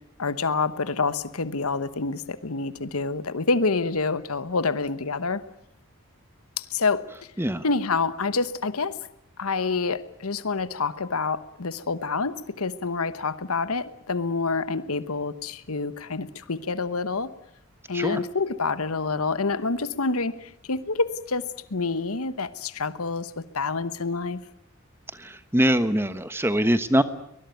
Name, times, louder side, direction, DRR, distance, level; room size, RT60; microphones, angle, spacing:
voice 1, 0.2-5.4 6.6-7.0 7.6-9.0 9.4-17.3 17.9-21.4 21.7-24.4, left 4 dB, 80° left, 14 dB, 1.2 m, -27 dB
voice 2, 25.2-27.0, equal, 10° right, 12 dB, 1.1 m, -23 dB
23.5 x 20.0 x 9.3 m, 0.73 s
head